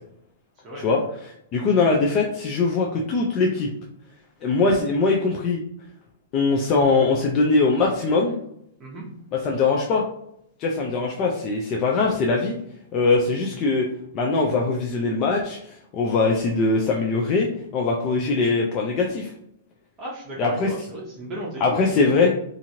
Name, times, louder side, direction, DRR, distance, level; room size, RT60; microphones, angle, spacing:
voice 1, 0.8-3.7 4.4-5.6 6.3-8.4 9.3-10.0 10.6-12.5 12.9-13.9 14.1-17.5 17.7-19.3 20.4-20.7 21.6-22.3, left 3 dB, 25° left, 0 dB, 0.4 m, -21 dB
voice 2, 20.0-22.0, right 1 dB, 20° right, -5 dB, 0.7 m, -35 dB
2.9 x 2.5 x 2.7 m, 0.74 s
hypercardioid pair, 165°, 0 cm